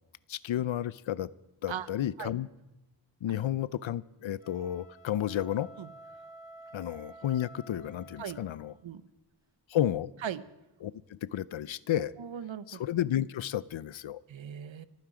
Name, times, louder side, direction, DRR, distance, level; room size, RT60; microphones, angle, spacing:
voice 1, 0.3-1.3 1.6-2.5 3.2-5.7 6.7-8.7 9.7-10.1 10.8-12.1 12.7-14.2, left 11 dB, 75° left, 20 dB, 0.6 m, -32 dB
sound 1, 4.3-8.9, right 2 dB, 10° right, 3.2 m, -51 dB
voice 2, 12.2-12.8 14.3-14.9, right 9 dB, 75° right, 15 dB, 0.9 m, -38 dB
25.5 x 9.4 x 4.9 m, 0.94 s
wide cardioid pair, 110°, 47 cm